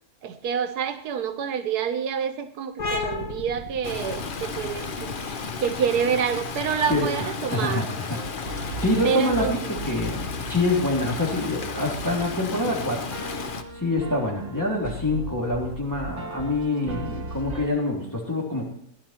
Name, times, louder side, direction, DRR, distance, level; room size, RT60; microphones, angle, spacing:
voice 1, 0.2-7.9 9.0-9.7, right 7 dB, 85° right, 9 dB, 1.4 m, -27 dB
sound 1, 2.8-10.1, left 3 dB, 70° left, 2.1 m, -37 dB
Stream, 3.8-13.6, left 5 dB, 40° left, 0.8 m, -33 dB
sound 2, 6.0-17.7, right 2 dB, 50° right, 3.1 m, -38 dB
voice 2, 6.9-8.2 8.5-9.6 9.8-13.0 13.7-18.6, left 2 dB, 10° left, -2 dB, 3.0 m, -26 dB
15.5 x 10.5 x 4.3 m, 0.66 s
omnidirectional pair, 1.6 m